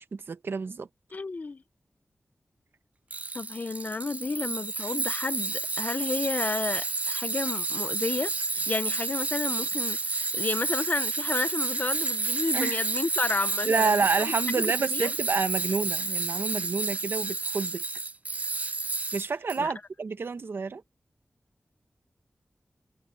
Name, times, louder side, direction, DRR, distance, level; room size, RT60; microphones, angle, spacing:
voice 1, 0.1-0.9 12.5-12.8 13.7-17.8 19.1-20.8, right 4 dB, 70° right, 1.0 m, -29 dB
voice 2, 1.1-1.6 3.3-13.9 14.3-15.1 19.6-19.7, left 3 dB, 45° left, 0.6 m, -32 dB
Tools, 3.1-19.6, right 3 dB, 35° right, 0.3 m, -30 dB
wide cardioid pair, 100°, 4 cm